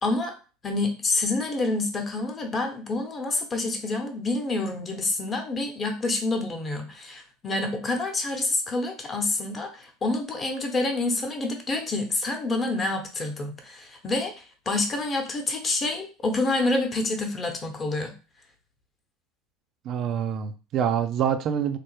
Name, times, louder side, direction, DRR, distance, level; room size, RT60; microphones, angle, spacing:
voice 1, 0.0-0.3 0.6-18.1, left 2 dB, 30° left, 4 dB, 0.9 m, -28 dB
voice 2, 19.9-21.8, right 8 dB, 50° right, 8 dB, 0.3 m, -26 dB
3.2 x 2.1 x 3.2 m, 0.33 s
hypercardioid pair, 80°, 0 cm